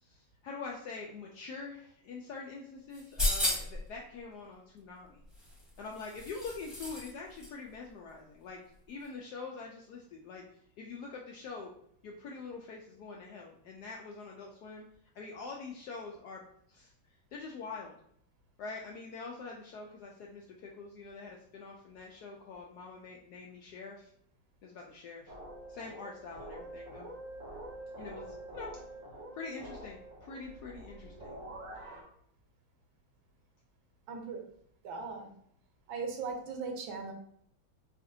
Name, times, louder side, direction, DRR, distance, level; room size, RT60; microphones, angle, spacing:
voice 1, 0.0-5.2 5.8-8.6 8.9-10.4 10.8-11.7 12.0-14.9 15.1-16.9 17.3-17.9 18.6-24.1 24.6-25.3 25.7-27.1 28.0-28.7 29.3-31.4, left 4 dB, 75° left, -1 dB, 0.9 m, -45 dB
sound 1, 2.9-3.8 5.3-7.1 7.4-7.5, left 1 dB, ahead, 0.9 m, -33 dB
sound 2, 25.3-32.0, right 1 dB, 55° right, 1.0 m, -46 dB
voice 2, 34.1-34.4 34.8-35.3 35.9-37.1, right 4 dB, 75° right, 3 dB, 1.4 m, -38 dB
4.9 x 2.5 x 2.6 m, 0.67 s
omnidirectional pair, 2.2 m